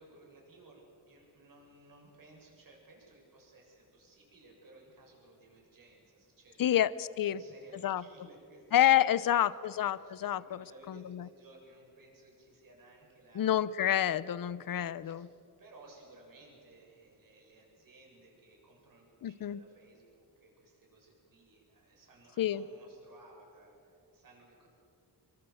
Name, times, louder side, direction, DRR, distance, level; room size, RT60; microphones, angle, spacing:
voice 1, 0.0-6.9 7.2-8.8 9.2-13.6 14.5-14.8 15.0-15.2 15.6-24.7, right 2 dB, 55° right, 0 dB, 7.4 m, -58 dB
voice 2, 6.6-7.4 7.8-8.0 8.7-11.3 13.4-15.3 19.2-19.6 22.4-22.6, left 11 dB, 55° left, 18 dB, 0.8 m, -28 dB
25.5 x 23.5 x 7.9 m, 2.6 s
wide cardioid pair, 120°, 40 cm